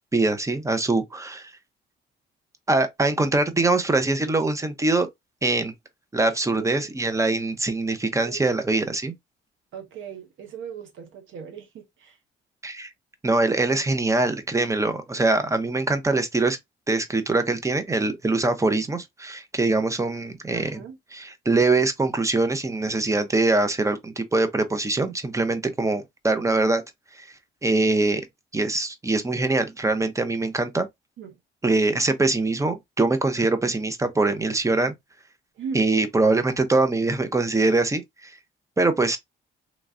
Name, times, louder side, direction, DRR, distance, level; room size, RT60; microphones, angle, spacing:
voice 1, 0.1-1.5 2.7-5.1 5.4-5.7 6.1-9.1 12.6-12.9 13.2-16.6 16.9-20.8 21.1-26.8 27.1-27.3 27.6-28.2 28.5-30.9 31.6-34.9 35.7-38.4 38.8-39.2, right 2 dB, 15° right, 0.5 m, -23 dB
voice 2, 6.2-6.9 8.2-8.4 9.7-12.2 20.5-21.0 31.2-31.4 35.6-35.9, right 7 dB, 75° right, 0.8 m, -38 dB
3.1 x 2.4 x 2.4 m
cardioid pair, 90°, 20 cm